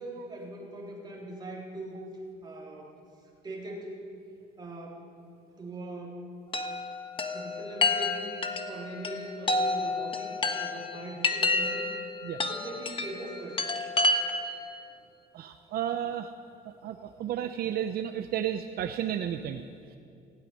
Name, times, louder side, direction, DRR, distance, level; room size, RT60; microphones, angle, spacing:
voice 1, 0.0-2.0 2.4-2.9 3.4-3.9 4.6-5.1 5.6-6.2 7.3-8.3 8.7-11.9 12.4-13.6 17.0-17.2, right 1 dB, 25° right, -3 dB, 3.7 m, -41 dB
Chime, 6.5-14.6, left 2 dB, 30° left, 1.2 m, -30 dB
voice 2, 15.3-16.3 16.8-19.6, right 10 dB, 65° right, 8 dB, 0.7 m, -32 dB
16.5 x 8.5 x 9.5 m, 2.4 s
cardioid pair, 110°, 17 cm